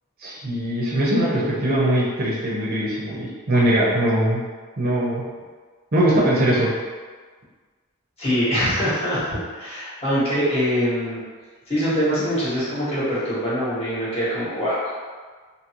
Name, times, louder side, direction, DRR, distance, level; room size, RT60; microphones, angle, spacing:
voice 1, 0.2-4.4 4.8-5.2 5.9-6.7, right 1 dB, 45° right, -6 dB, 0.6 m, -21 dB
voice 2, 8.2-11.2 11.7-14.9, equal, 30° left, -11 dB, 1.2 m, -23 dB
2.8 x 2.6 x 2.9 m, 1.5 s
head